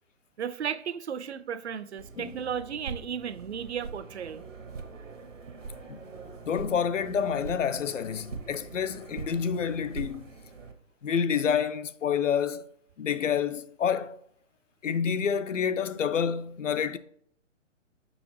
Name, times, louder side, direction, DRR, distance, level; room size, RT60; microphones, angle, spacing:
voice 1, 0.4-4.4, right 8 dB, 60° right, 0.5 m, -34 dB
sound 1, 2.0-10.7, right 4 dB, 80° right, 1.2 m, -43 dB
voice 2, 6.4-10.3 11.0-12.6 13.0-14.2 14.8-17.0, left 7 dB, 70° left, 0.6 m, -28 dB
6.2 x 5.8 x 3.2 m
figure-of-eight pair, 125°, 38 cm